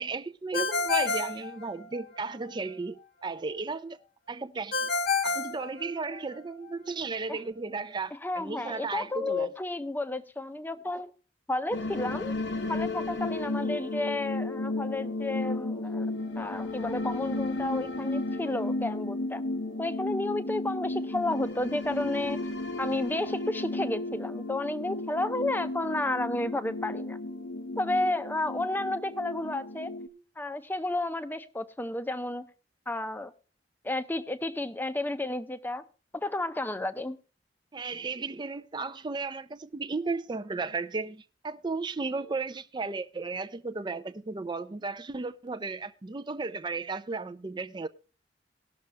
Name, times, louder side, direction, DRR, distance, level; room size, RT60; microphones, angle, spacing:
voice 1, 0.0-4.0 4.3-4.9 5.2-9.5 37.7-47.9, right 4 dB, 25° right, 0.5 m, -34 dB
Ringtone, 0.5-2.2 4.7-6.4, left 4 dB, 55° left, 1.0 m, -29 dB
voice 2, 8.1-11.1 11.5-12.3 12.7-19.4 19.8-22.4 22.8-27.2 27.8-29.9 30.4-32.5 32.9-33.3 33.8-35.8 36.1-37.2, left 2 dB, 10° left, 0.6 m, -32 dB
sound 1, 11.7-30.1, left 2 dB, 90° left, 0.9 m, -34 dB
18.0 x 6.5 x 3.4 m
head